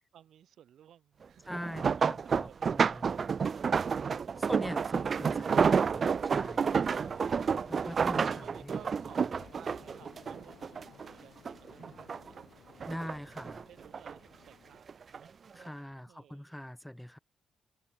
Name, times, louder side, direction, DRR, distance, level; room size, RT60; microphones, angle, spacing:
voice 1, 0.1-1.6 2.2-3.6 6.9-15.3 15.8-16.7, right 10 dB, 70° right, 4.5 m, -58 dB
voice 2, 1.5-3.0 4.4-6.7 7.7-8.8 12.8-13.6 15.5-17.2, equal, 5° left, 1.6 m, -42 dB
sound 1, 1.5-11.1 11.4-12.4 12.8-14.1 14.9-15.2 15.6-15.7, right 6 dB, 40° right, 0.4 m, -30 dB
sound 2, 5.7-14.8, left 11 dB, 75° left, 3.2 m, -58 dB
cardioid pair, 115°, 0 cm